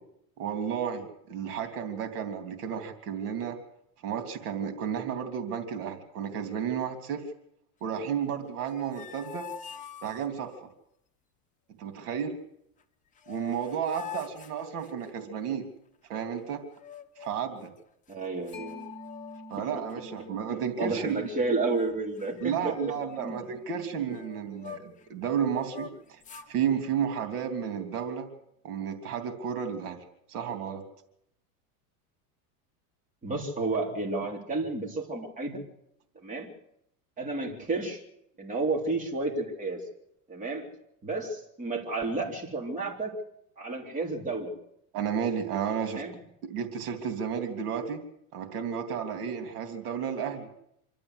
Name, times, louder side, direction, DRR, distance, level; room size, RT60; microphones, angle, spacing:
voice 1, 0.4-3.6 4.0-7.3 7.8-9.5 10.0-10.7 11.8-12.3 13.3-15.7 16.1-16.6 17.2-17.7 19.5-21.3 22.4-26.2 26.5-28.3 28.6-30.0 30.3-30.8 44.9-46.0 46.4-48.0 48.3-50.5, right 8 dB, 75° right, 6 dB, 3.0 m, -32 dB
sound 1, 8.6-10.6 12.8-12.9 13.2-15.4 16.7-17.6 18.1-18.2 18.5-19.6 19.9-20.2 20.8-21.4 21.7-21.9 22.2-25.1 25.5-26.5, left 10 dB, 15° left, 0.9 m, -45 dB
voice 2, 18.1-18.9 20.8-23.4 33.2-35.6 36.2-36.5 37.2-38.0 38.4-39.8 40.3-40.6 41.0-43.1 43.6-44.5 46.0-46.1, right 3 dB, 15° right, -1 dB, 3.4 m, -31 dB
Mallet percussion, 18.5-25.8, left 1 dB, 35° left, 3.4 m, -49 dB
26.5 x 12.5 x 8.0 m, 0.77 s
supercardioid pair, 145°, 45 cm